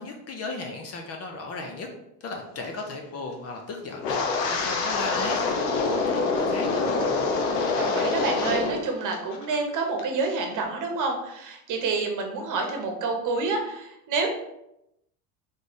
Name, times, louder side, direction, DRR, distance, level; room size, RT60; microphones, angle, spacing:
voice 1, 0.0-1.9 2.2-4.2 4.5-7.3, left 3 dB, 30° left, 2 dB, 0.6 m, -36 dB
Wind, 4.0-8.9 9.1-9.6 10.0-10.3, left 4 dB, 85° left, 1.0 m, -25 dB
voice 2, 7.8-14.3, right 4 dB, 40° right, 3 dB, 1.1 m, -28 dB
3.6 x 3.2 x 4.1 m, 0.84 s
supercardioid pair, 120°, 47 cm